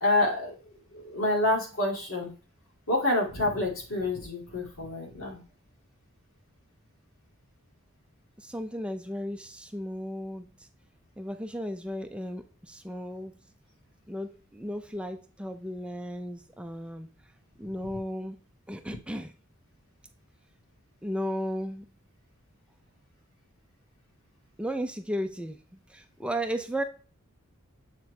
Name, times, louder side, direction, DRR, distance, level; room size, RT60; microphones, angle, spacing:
voice 1, 0.0-2.3 2.9-5.4 17.8-17.9, left 1 dB, 75° left, -1 dB, 2.3 m, -28 dB
voice 2, 8.4-10.7 11.2-13.3 14.1-17.1 17.6-18.4 18.7-19.3 21.0-21.9 24.6-26.8, equal, 5° right, 6 dB, 0.4 m, -35 dB
7.4 x 4.3 x 3.2 m, 0.36 s
head